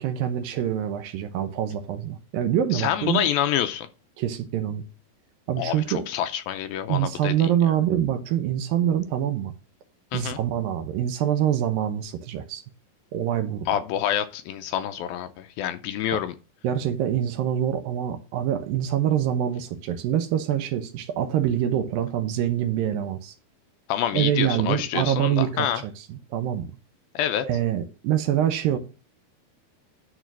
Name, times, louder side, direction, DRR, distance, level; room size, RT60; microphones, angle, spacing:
voice 1, 0.0-3.3 4.2-4.8 5.5-6.0 6.9-9.5 10.1-12.6 13.1-13.7 16.1-16.2 16.6-23.3 24.1-26.7 27.4-28.8, right 10 dB, 75° right, 2.4 m, -25 dB
voice 2, 2.7-3.9 5.6-7.5 10.1-10.4 13.7-16.4 23.9-25.8 27.2-27.5, left 11 dB, 80° left, 2.3 m, -27 dB
11.5 x 3.9 x 6.1 m
omnidirectional pair, 4.6 m